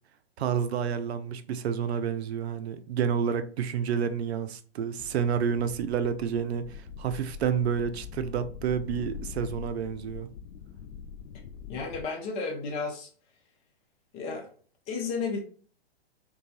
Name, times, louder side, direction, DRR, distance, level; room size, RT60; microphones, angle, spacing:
voice 1, 0.4-10.3, right 7 dB, 80° right, 0.5 m, -29 dB
sound 1, 5.0-12.0, left 6 dB, 80° left, 0.5 m, -43 dB
voice 2, 11.7-13.1 14.1-14.5 14.9-15.4, left 4 dB, 20° left, 0.4 m, -32 dB
3.9 x 2.3 x 2.6 m
hypercardioid pair, 145°, 32 cm